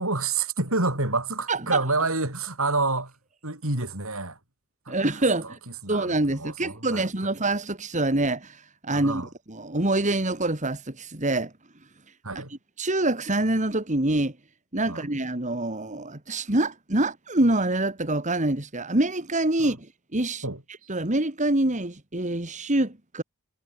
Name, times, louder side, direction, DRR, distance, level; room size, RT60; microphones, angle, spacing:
voice 1, 0.0-3.1 3.4-4.4 4.9-5.0 5.4-5.5 5.8-7.3 8.9-9.3 12.2-12.5 14.9-15.0 19.6-19.8 20.4-20.6, right 3 dB, 65° right, 6.8 m, -28 dB
voice 2, 1.5-1.8 4.9-5.6 5.9-9.2 9.5-11.5 12.3-14.3 14.7-20.5 20.9-23.2, right 2 dB, 35° right, 2.3 m, -26 dB
head